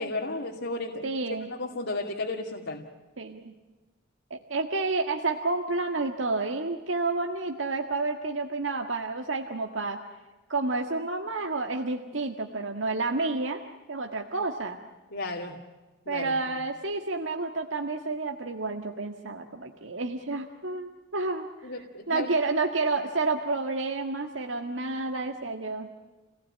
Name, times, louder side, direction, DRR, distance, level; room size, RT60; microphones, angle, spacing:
voice 1, 0.0-1.1 1.5-2.8 15.1-15.6 16.1-16.3 21.6-22.3, left 2 dB, 65° left, -1 dB, 2.4 m, -33 dB
voice 2, 1.0-1.5 3.2-3.5 4.3-10.0 10.5-13.6 13.9-14.8 16.1-21.5 22.1-25.9, right 3 dB, 80° right, 3 dB, 1.8 m, -30 dB
29.0 x 18.5 x 8.7 m, 1.2 s
head